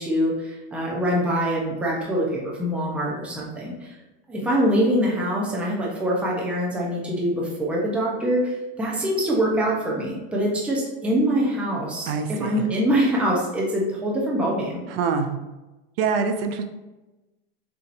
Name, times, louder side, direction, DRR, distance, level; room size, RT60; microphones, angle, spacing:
voice 1, 0.0-4.0 4.3-14.8, equal, 5° right, -3 dB, 0.6 m, -24 dB
voice 2, 12.1-12.6 14.9-15.4 16.0-16.6, right 5 dB, 60° right, 6 dB, 0.6 m, -25 dB
6.9 x 2.9 x 2.5 m, 1.1 s
supercardioid pair, 165°, 32 cm